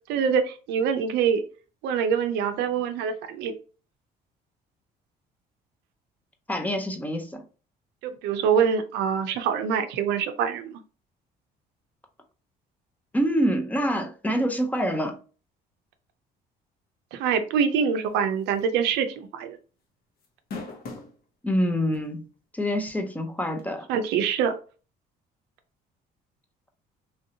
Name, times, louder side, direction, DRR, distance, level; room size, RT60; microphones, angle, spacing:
voice 1, 0.1-1.4 1.8-3.5 8.0-10.8 17.1-19.6 23.9-24.6, right 7 dB, 90° right, 0.5 m, -25 dB
voice 2, 6.5-7.4 13.1-15.2 21.4-22.3 22.5-23.8, equal, 10° left, 0.6 m, -26 dB
sound 1, 18.5-18.8 19.1-19.2 20.2-21.2 21.9-22.0 23.6-23.7, left 3 dB, 65° left, 1.0 m, -37 dB
3.1 x 2.7 x 2.7 m
cardioid pair, 110°, 17 cm